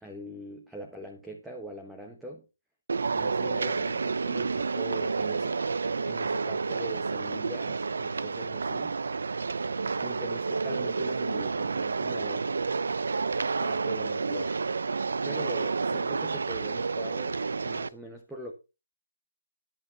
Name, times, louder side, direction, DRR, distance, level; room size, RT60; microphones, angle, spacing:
voice 1, 0.0-2.4 3.1-5.6 6.0-9.0 10.0-12.5 13.6-14.6 15.2-18.5, right 1 dB, ahead, 1 dB, 1.2 m, -42 dB
sound 1, 2.9-17.9, right 4 dB, 65° right, 0.7 m, -30 dB
11.0 x 8.3 x 4.6 m, 0.29 s
hypercardioid pair, 165°, 0 cm